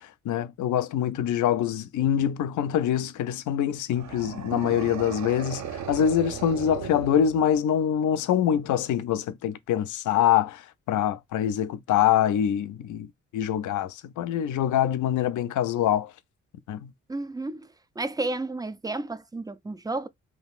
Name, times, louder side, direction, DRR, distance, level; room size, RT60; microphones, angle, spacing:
voice 1, 0.3-10.6 10.9-13.1 13.3-16.1 16.7-16.9, left 10 dB, 70° left, 0.5 m, -24 dB
sound 1, 3.9-7.8, right 8 dB, 60° right, 0.6 m, -36 dB
voice 2, 17.1-17.7 18.0-20.1, right 2 dB, 15° right, 0.3 m, -32 dB
2.7 x 2.3 x 3.4 m
supercardioid pair, 50°, 31 cm